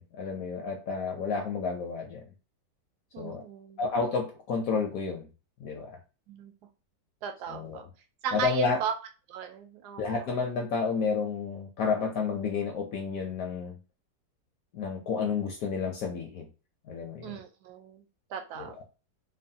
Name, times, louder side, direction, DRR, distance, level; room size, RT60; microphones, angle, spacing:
voice 1, 0.0-2.2 3.2-3.4 3.8-5.3 5.6-6.0 7.5-7.8 8.3-8.8 10.0-13.8 14.7-16.5 16.9-17.3 18.6-18.7, left 5 dB, 70° left, 0.8 m, -31 dB
voice 2, 3.1-3.8 6.3-6.5 7.2-7.9 8.2-8.9 9.3-10.0 17.2-18.8, right 8 dB, 75° right, 1.1 m, -36 dB
3.1 x 2.2 x 2.6 m
omnidirectional pair, 1.9 m